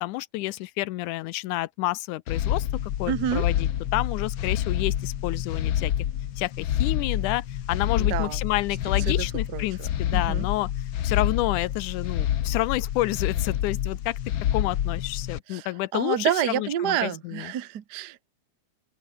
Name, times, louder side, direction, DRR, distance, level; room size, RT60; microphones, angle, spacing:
voice 1, 0.0-5.9 6.4-10.7 11.0-14.2 14.5-17.5, left 18 dB, 85° left, 2.1 m, -29 dB
sound 1, 2.3-15.4, left 11 dB, 65° left, 1.3 m, -27 dB
voice 2, 3.1-3.5 8.0-8.4 9.1-9.2 9.5-10.4 15.5-15.7 15.9-18.3, right 11 dB, 65° right, 1.0 m, -29 dB
open air
omnidirectional pair, 3.6 m